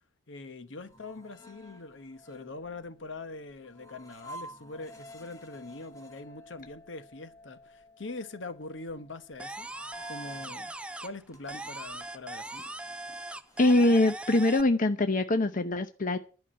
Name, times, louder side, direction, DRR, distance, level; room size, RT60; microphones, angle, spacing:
voice 1, 0.3-9.7 10.0-10.7 11.0-12.6, left 3 dB, 65° left, 1.0 m, -43 dB
sound 1, 0.8-10.7 11.1-14.3, equal, 15° left, 1.3 m, -52 dB
sound 2, 9.4-11.2 11.5-14.6, right 2 dB, 5° right, 0.5 m, -40 dB
voice 2, 13.6-16.2, left 2 dB, 45° left, 0.8 m, -23 dB
11.5 x 5.9 x 8.8 m
head